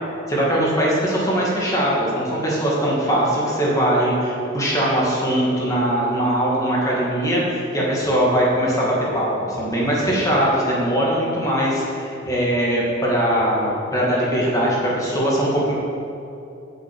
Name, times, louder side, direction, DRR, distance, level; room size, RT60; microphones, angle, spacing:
voice 1, 0.3-15.7, equal, 15° left, -5 dB, 2.3 m, -21 dB
8.9 x 6.9 x 7.8 m, 2.7 s
head